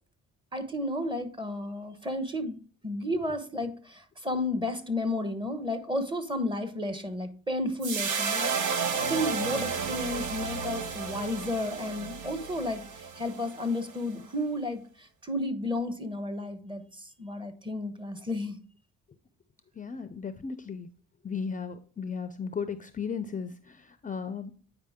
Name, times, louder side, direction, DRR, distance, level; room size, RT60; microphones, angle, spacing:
voice 1, 0.5-2.6 2.8-18.6, left 1 dB, 15° right, 10 dB, 1.1 m, -32 dB
sound 1, 7.8-14.2, right 5 dB, 75° right, 1.0 m, -32 dB
voice 2, 19.8-20.9 21.2-24.5, left 6 dB, 25° left, 10 dB, 0.5 m, -35 dB
8.6 x 5.0 x 3.6 m, 0.40 s
cardioid pair, 85°, 31 cm